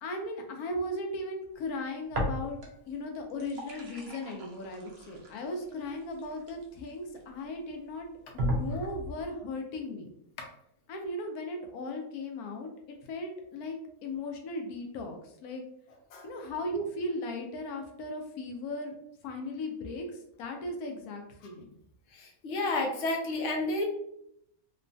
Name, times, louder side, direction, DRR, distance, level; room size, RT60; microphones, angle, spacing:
voice 1, 0.0-2.6 2.9-8.1 8.3-10.1 10.9-12.7 13.1-13.8 14.0-15.6 16.2-18.9 19.2-21.7, left 1 dB, 80° left, 3 dB, 1.1 m, -37 dB
sound 1, 2.1-2.9 3.2-7.2 7.8-7.9 8.4-9.3, equal, 70° right, 0.6 m, -35 dB
voice 2, 22.1-23.8, left 2 dB, 65° left, 2 dB, 0.7 m, -31 dB
3.0 x 2.2 x 2.5 m, 0.75 s
omnidirectional pair, 1.6 m